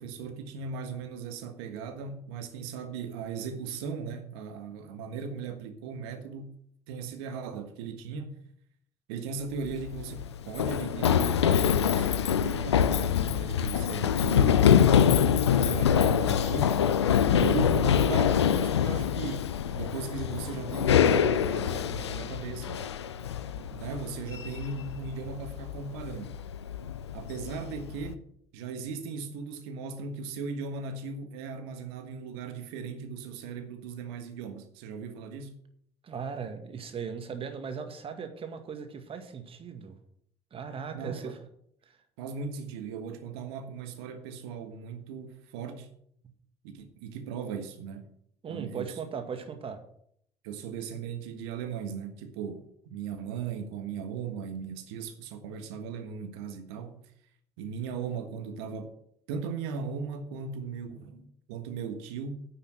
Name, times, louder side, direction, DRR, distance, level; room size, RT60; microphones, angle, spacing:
voice 1, 0.0-6.5 6.9-8.3 9.1-16.8 17.3-22.9 23.5-26.4 27.1-28.2 28.5-35.6 40.9-41.3 42.2-45.9 46.6-48.1 48.5-49.0 50.4-57.0 57.6-58.9 59.3-62.5, right 5 dB, 70° right, 1.5 m, -38 dB
Run, 9.6-28.1, left 8 dB, 85° left, 0.5 m, -25 dB
voice 2, 36.0-40.0 40.5-41.4 41.8-42.0 48.4-49.8, right 6 dB, 40° right, 2.0 m, -38 dB
9.6 x 6.7 x 7.5 m
figure-of-eight pair, 55°, 14 cm